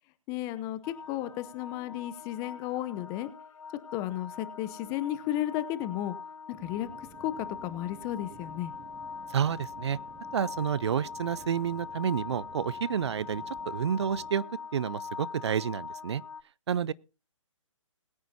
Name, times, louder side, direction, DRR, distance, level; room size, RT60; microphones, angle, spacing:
voice 1, 0.3-3.3 3.9-6.2 6.5-8.7, left 13 dB, 20° left, 0.8 m, -34 dB
sound 1, 0.8-16.4, left 5 dB, 80° left, 0.7 m, -42 dB
sound 2, 6.6-14.3, right 5 dB, 15° right, 1.2 m, -53 dB
voice 2, 9.3-10.0 10.3-14.4 14.7-16.2 16.7-16.9, right 8 dB, 55° right, 0.6 m, -30 dB
21.0 x 9.3 x 2.8 m
figure-of-eight pair, 145°, 17 cm